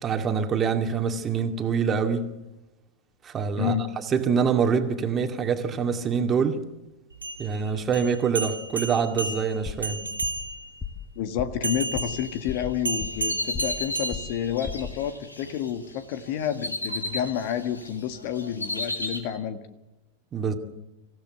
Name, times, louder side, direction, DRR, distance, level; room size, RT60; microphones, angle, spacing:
voice 1, 0.0-2.2 3.2-3.8 4.1-6.6 7.4-10.0 20.3-20.5, right 6 dB, 25° right, 2.3 m, -25 dB
voice 2, 3.6-3.9 11.2-19.6, left 9 dB, 45° left, 1.7 m, -29 dB
sound 1, 7.1-10.8 11.6-14.8, right 2 dB, 80° right, 2.8 m, -33 dB
sound 2, 9.7-9.9 10.2-10.5 10.8-11.1 11.4-11.6 11.9-12.2 12.5-13.3 13.5-13.8 14.1-14.4 14.7-15.0, left 6 dB, 15° left, 1.7 m, -35 dB
sound 3, 12.4-15.7 16.1-17.9 18.1-19.2, left 2 dB, 80° left, 2.9 m, -34 dB
26.0 x 16.0 x 8.0 m
figure-of-eight pair, 90°, 0 cm